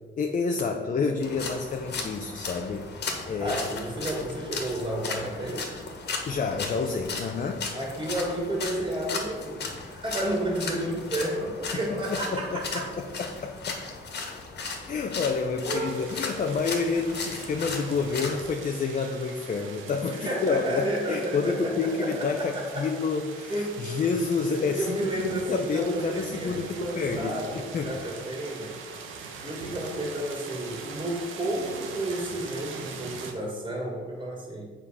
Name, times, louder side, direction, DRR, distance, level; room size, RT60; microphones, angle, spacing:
voice 1, 0.2-3.6 6.3-7.7 11.7-13.8 14.9-28.0, left 4 dB, 40° left, 3 dB, 0.7 m, -29 dB
sound 1, 1.2-18.5, left 4 dB, 60° left, 1.6 m, -36 dB
voice 2, 3.4-5.7 7.7-12.9 15.6-15.9 20.1-22.9 23.5-23.8 24.6-28.7 29.4-34.7, right 1 dB, 25° right, -2 dB, 2.1 m, -31 dB
sound 2, 15.8-33.3, right 5 dB, 80° right, 1.1 m, -42 dB
7.3 x 5.1 x 5.8 m, 1.5 s
cardioid pair, 90°, 20 cm